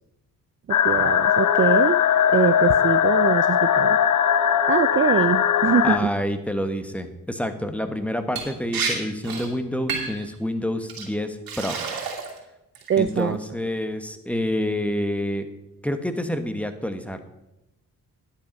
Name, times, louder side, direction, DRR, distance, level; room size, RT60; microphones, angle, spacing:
sound 1, 0.7-6.0, left 9 dB, 55° left, 0.8 m, -19 dB
voice 1, 0.7-2.0 2.3-4.0 4.7-6.1 12.9-13.4, right 8 dB, 35° right, 13 dB, 0.5 m, -23 dB
voice 2, 5.8-11.8 13.0-15.5 15.8-17.2, left 1 dB, 5° left, 8 dB, 1.4 m, -28 dB
Liquid, 8.4-8.5 8.7-8.9 9.2-9.5 9.9-10.2 10.9-11.0 11.5-12.4 12.7-13.2, right 5 dB, 70° right, 2.8 m, -29 dB
10.5 x 8.3 x 5.3 m, 0.92 s
supercardioid pair, 60°, 37 cm